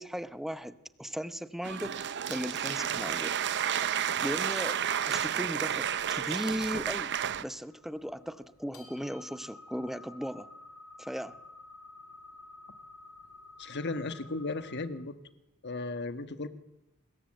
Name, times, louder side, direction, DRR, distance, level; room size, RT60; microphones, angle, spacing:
voice 1, 0.0-2.0 2.3-3.4 4.0-4.8 5.1-7.1 7.4-10.5 11.0-11.3, equal, ahead, 13 dB, 0.8 m, -37 dB
sound 1, 1.6-7.4, right 9 dB, 55° right, 0.8 m, -31 dB
sound 2, 7.7-14.9, left 2 dB, 75° left, 4.6 m, -52 dB
voice 2, 13.6-15.1 15.6-16.5, left 3 dB, 50° left, 11 dB, 1.5 m, -35 dB
25.5 x 21.0 x 7.9 m, 0.92 s
head